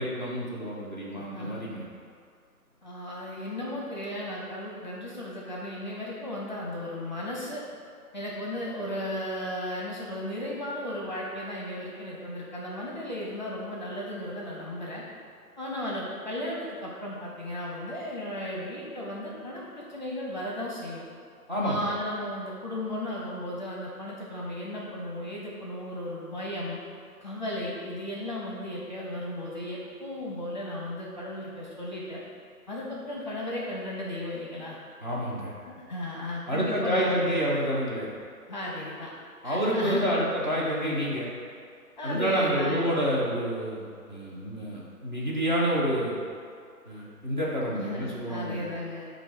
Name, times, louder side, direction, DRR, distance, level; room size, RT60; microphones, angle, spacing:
voice 1, 0.0-1.8 21.5-21.9 35.0-35.5 36.5-38.1 39.4-41.3 42.0-46.1 46.9-48.7, equal, 30° right, -5 dB, 0.9 m, -28 dB
voice 2, 1.1-1.6 2.8-7.6 8.1-15.0 15.6-21.0 21.6-26.8 27.2-32.2 32.7-34.8 35.6-37.3 38.5-39.1 39.4-40.1 42.0-43.0 47.8-49.1, left 1 dB, 30° left, -4 dB, 0.7 m, -35 dB
7.6 x 2.6 x 5.0 m, 2.3 s
figure-of-eight pair, 150°, 46 cm